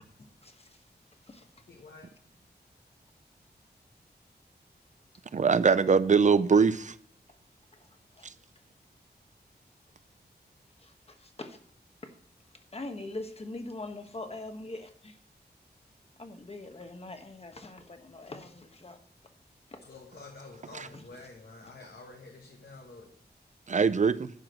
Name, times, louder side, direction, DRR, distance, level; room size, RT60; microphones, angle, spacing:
voice 1, 0.2-0.8 1.2-1.5 7.7-7.9 8.1-8.3 10.8-11.6 12.0-12.1 12.7-15.2 16.2-19.0 19.7-19.8 20.9-21.3 21.6-21.7, left 2 dB, 35° left, 1.3 m, -43 dB
voice 2, 1.7-2.1 19.9-23.2, left 3 dB, 70° left, 1.3 m, -49 dB
voice 3, 5.3-6.9 20.7-20.9 23.7-24.3, right 5 dB, 45° right, 0.5 m, -22 dB
11.5 x 4.9 x 6.2 m
wide cardioid pair, 90°, 17 cm